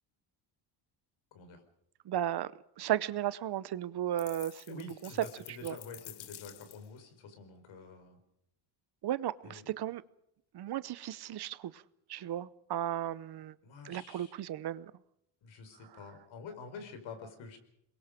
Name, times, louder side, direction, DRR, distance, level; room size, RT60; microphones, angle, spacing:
voice 1, 2.1-2.5 2.8-4.8 5.6-5.7 9.0-10.0 10.5-11.8 12.1-13.5 13.8-14.9, right 12 dB, 55° right, 17 dB, 0.8 m, -35 dB
sound 1, 4.2-7.0, left 13 dB, 55° left, 0.8 m, -51 dB
voice 2, 4.7-8.2 9.4-9.8 13.6-14.3 15.4-17.6, left 4 dB, 70° left, 7 dB, 4.9 m, -48 dB
26.5 x 22.0 x 5.1 m, 0.76 s
cardioid pair, 130°, 48 cm